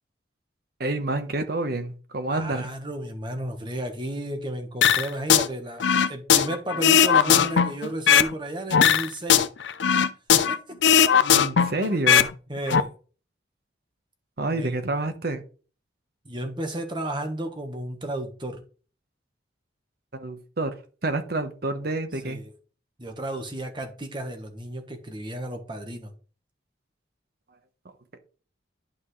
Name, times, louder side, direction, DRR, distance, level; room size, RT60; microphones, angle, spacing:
voice 1, 0.8-2.7 11.3-12.3 14.4-15.4 20.1-20.7 21.0-22.4 28.1-28.2, right 2 dB, 55° right, 1.2 m, -28 dB
voice 2, 2.3-9.5 10.3-10.8 12.5-12.9 14.5-14.8 16.2-18.6 22.2-22.5 23.0-26.1, right 1 dB, 25° right, 1.4 m, -33 dB
sound 1, 4.8-5.5 5.8-8.3 8.7-10.6 10.8-12.3 12.6-12.8, left 8 dB, 75° left, 0.5 m, -18 dB
11.0 x 5.3 x 3.3 m
head